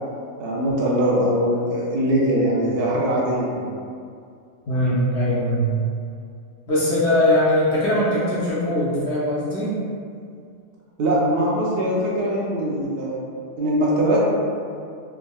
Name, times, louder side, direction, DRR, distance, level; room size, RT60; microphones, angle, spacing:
voice 1, 0.4-3.6 11.0-13.2 13.6-14.2, right 1 dB, 60° right, -5 dB, 0.7 m, -21 dB
voice 2, 4.7-5.7 6.7-9.8, left 1 dB, 65° left, -8 dB, 0.8 m, -21 dB
3.5 x 2.1 x 2.3 m, 2.3 s
omnidirectional pair, 1.4 m